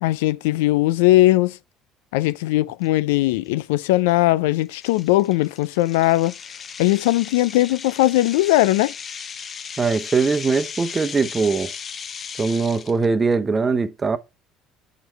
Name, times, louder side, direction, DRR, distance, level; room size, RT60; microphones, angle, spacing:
voice 1, 0.0-1.6 2.1-6.3 6.8-8.9, left 17 dB, 85° left, 0.3 m, -19 dB
sound 1, 2.8-2.9 3.5-3.7 4.1-4.2 4.7-13.1, left 6 dB, 45° left, 0.6 m, -36 dB
voice 2, 9.8-11.7 12.4-14.2, right 4 dB, 30° right, 0.9 m, -21 dB
6.3 x 5.1 x 4.5 m
supercardioid pair, 75°, 0 cm